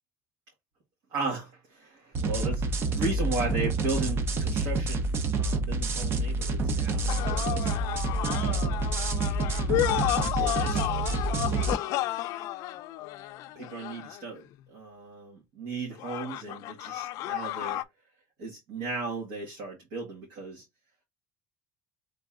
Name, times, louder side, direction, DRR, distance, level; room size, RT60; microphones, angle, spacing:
voice 1, 1.1-5.0 5.3-7.7 8.4-8.8 9.8-10.9 11.5-12.0 13.6-17.8 18.4-20.6, right 3 dB, 70° right, 2.1 m, -36 dB
sound 1, 2.1-11.7, right 3 dB, 40° right, 0.7 m, -28 dB
sound 2, 7.1-14.4 16.0-17.8, left 15 dB, 65° left, 0.5 m, -32 dB
3.9 x 3.4 x 3.6 m
cardioid pair, 160°, 6 cm